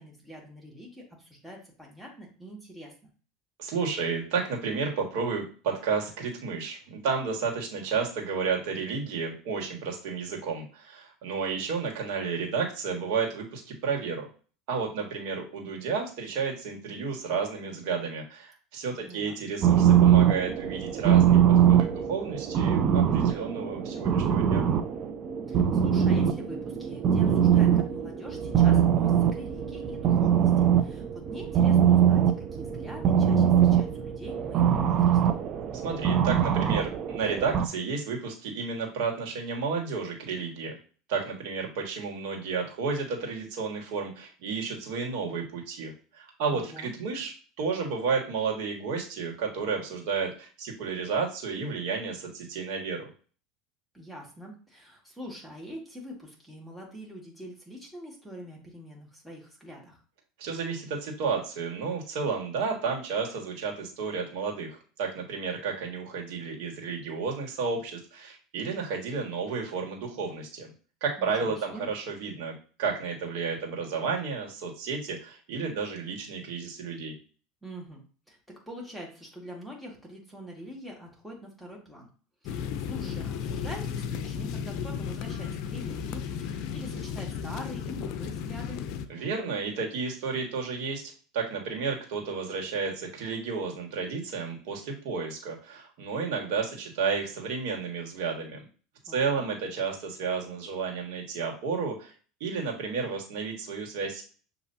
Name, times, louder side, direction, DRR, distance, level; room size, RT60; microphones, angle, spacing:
voice 1, 0.0-2.9 19.0-19.4 25.5-35.4 46.5-46.9 53.9-60.0 71.2-71.8 77.6-78.0 78.3-82.1 82.4-88.8 99.1-99.5, equal, ahead, -3 dB, 1.9 m, -44 dB
voice 2, 3.6-14.3 14.7-24.7 35.8-40.8 41.1-53.1 60.4-70.7 71.0-77.1 89.1-98.6 99.1-102.1 102.4-104.2, right 5 dB, 70° right, 0 dB, 1.7 m, -32 dB
sound 1, 19.6-37.7, right 9 dB, 40° right, 0.5 m, -23 dB
sound 2, 82.5-89.1, left 7 dB, 60° left, 0.5 m, -34 dB
6.7 x 2.8 x 2.7 m, 0.39 s
supercardioid pair, 105°, 0 cm